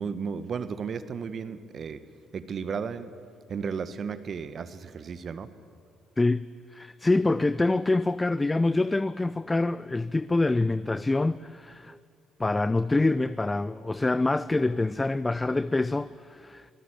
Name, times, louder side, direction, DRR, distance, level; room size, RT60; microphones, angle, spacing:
voice 1, 0.0-2.0 2.3-3.1 3.5-5.5, right 6 dB, 50° right, 1.6 m, -34 dB
voice 2, 6.7-12.0 12.4-16.7, left 2 dB, 20° left, 0.6 m, -25 dB
29.5 x 18.5 x 8.8 m
hypercardioid pair, 50°, 0 cm